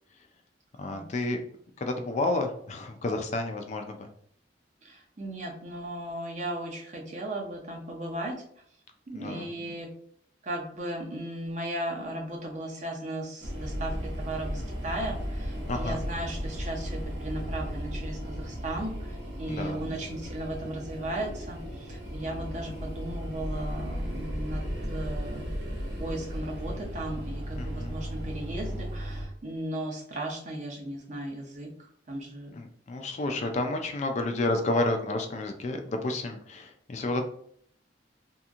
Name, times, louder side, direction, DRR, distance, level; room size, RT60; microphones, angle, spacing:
voice 1, 0.8-1.4 1.8-4.1 9.1-9.5 15.7-16.0 19.5-19.9 27.6-27.9 32.5-37.2, left 2 dB, 40° left, 5 dB, 0.3 m, -30 dB
voice 2, 4.8-8.4 9.1-9.9 10.4-19.0 19.4-24.6 24.9-25.5 26.0-31.7 32.1-32.6 33.2-33.4, right 1 dB, 40° right, 0 dB, 0.6 m, -36 dB
sound 1, 13.4-29.2, equal, 70° right, 0.9 m, -35 dB
2.8 x 2.6 x 2.4 m, 0.63 s
head